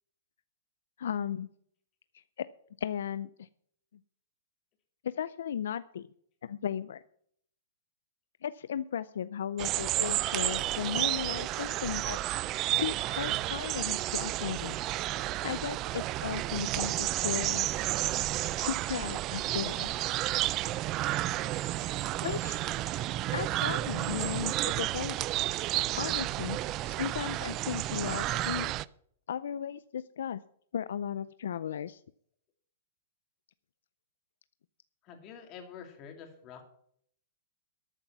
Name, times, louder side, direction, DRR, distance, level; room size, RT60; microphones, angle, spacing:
voice 1, 1.0-1.5 2.1-2.5 2.8-3.5 5.0-6.1 6.4-7.0 8.4-12.2 12.7-14.8 15.4-17.7 18.6-19.9 22.2-22.6 23.3-25.3 25.9-26.6 26.8-28.7 29.3-30.4 30.7-32.0, left 9 dB, 75° left, 15 dB, 0.5 m, -36 dB
sound 1, 9.6-28.8, right 16 dB, 30° right, 0.4 m, -31 dB
voice 2, 35.0-36.6, left 7 dB, 35° left, 4 dB, 2.8 m, -47 dB
13.5 x 8.2 x 6.0 m, 0.65 s
hypercardioid pair, 140°, 0 cm